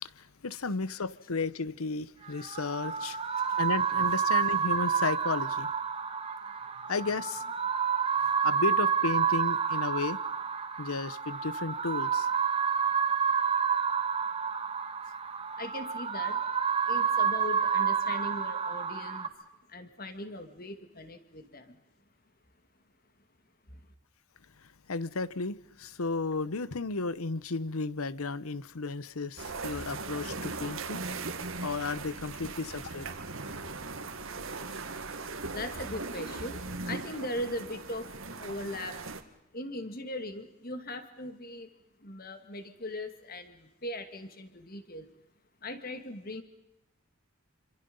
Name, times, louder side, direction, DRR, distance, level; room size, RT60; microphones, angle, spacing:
voice 1, 0.0-3.2 3.6-5.7 6.9-7.5 8.4-10.2 10.8-12.3 24.9-31.0 31.6-33.1, left 4 dB, 80° left, 0.9 m, -33 dB
sound 1, 2.3-19.3, right 7 dB, 25° right, 1.7 m, -29 dB
voice 2, 3.1-3.6 15.6-16.5 16.8-21.8 23.7-23.8 35.5-39.0 39.5-41.7 42.0-45.1 45.6-46.4, left 1 dB, 40° left, 2.4 m, -40 dB
sound 2, 29.4-39.2, right 3 dB, 65° right, 2.0 m, -39 dB
27.5 x 26.0 x 5.5 m
head